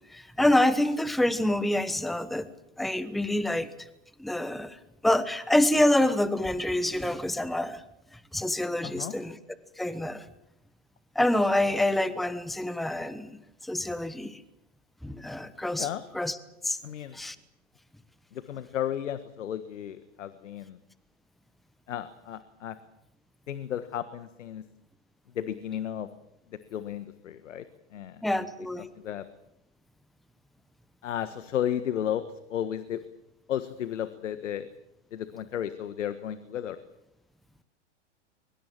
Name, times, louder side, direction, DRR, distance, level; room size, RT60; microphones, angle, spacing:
voice 1, 0.1-2.5 2.8-3.7 4.2-4.8 5.0-7.8 8.3-9.4 9.8-10.2 11.1-13.4 13.6-14.4 15.0-15.9 16.1-16.4 16.6-16.8 17.1-17.4 28.2-28.9, left 1 dB, ahead, 15 dB, 1.1 m, -26 dB
voice 2, 8.8-9.1 15.8-16.0 16.8-17.2 18.3-20.8 21.9-22.8 23.5-24.7 25.3-26.1 26.5-27.7 27.9-28.5 29.0-29.3 31.0-33.0 33.5-34.7 35.1-36.8, left 10 dB, 75° left, 12 dB, 1.6 m, -33 dB
23.0 x 21.5 x 7.6 m, 0.86 s
hypercardioid pair, 115°, 37 cm